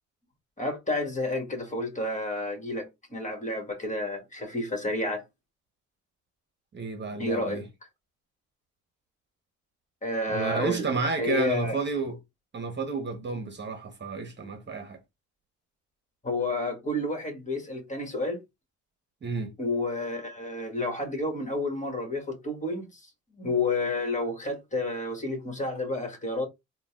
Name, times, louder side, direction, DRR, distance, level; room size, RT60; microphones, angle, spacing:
voice 1, 0.6-5.2 7.2-7.6 10.0-10.9 11.2-11.8 16.2-18.4 19.6-23.0 23.4-26.5, left 2 dB, 25° left, 1.7 m, -30 dB
voice 2, 6.7-7.6 10.3-12.2 12.5-15.0 19.2-19.5, right 4 dB, 35° right, 1.1 m, -31 dB
3.8 x 2.4 x 3.6 m
cardioid pair, 90°, 30 cm